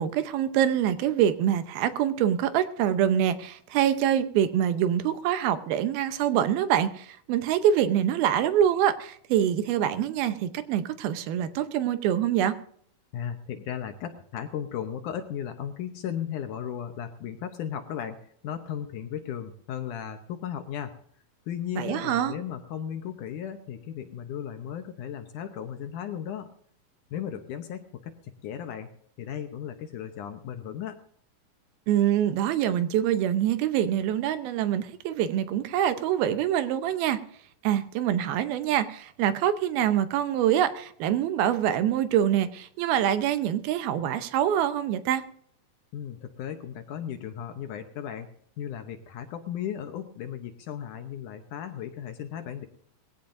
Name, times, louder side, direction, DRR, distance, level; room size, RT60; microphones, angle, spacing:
voice 1, 0.0-12.5 21.8-22.4 31.9-37.2 37.6-45.2, right 10 dB, 80° right, 2.7 m, -25 dB
voice 2, 13.1-18.2 18.4-20.9 21.5-26.5 27.1-28.9 29.2-31.0 45.9-48.3 48.6-52.7, left 9 dB, 70° left, 2.1 m, -36 dB
20.5 x 16.0 x 2.6 m
omnidirectional pair, 4.4 m